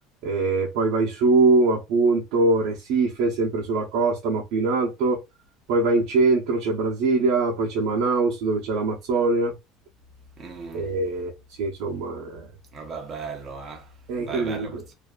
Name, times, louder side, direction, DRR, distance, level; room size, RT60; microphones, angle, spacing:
voice 1, 0.2-5.2 5.7-9.5 10.7-11.3 11.6-12.5 14.1-14.8, right 3 dB, 65° right, 0.7 m, -22 dB
voice 2, 10.4-10.9 12.7-14.9, right 5 dB, 30° right, 0.6 m, -37 dB
2.6 x 2.4 x 2.3 m
cardioid pair, 145°, 0 cm